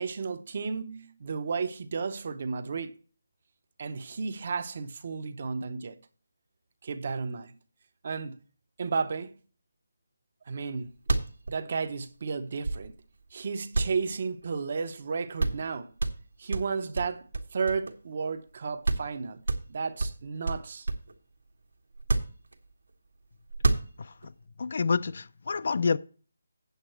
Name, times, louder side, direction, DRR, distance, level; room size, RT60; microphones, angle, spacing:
voice 1, 0.0-3.0 3.8-6.0 6.8-7.5 8.0-8.4 8.8-9.3 10.5-10.9 11.5-13.0 13.3-15.9 16.4-17.3 17.5-20.9, right 5 dB, 30° right, 0.6 m, -33 dB
sound 1, 10.7-10.8 11.0-13.2 13.7-14.8 15.1-15.2 15.4-15.7 16.0-18.2 18.5-18.6 18.8-19.1 19.5-21.2 21.9-22.9 23.5-24.3, right 3 dB, 80° right, 1.4 m, -30 dB
voice 2, 24.6-26.0, left 5 dB, 40° left, 0.3 m, -28 dB
8.3 x 8.1 x 4.4 m
hypercardioid pair, 180°, 0 cm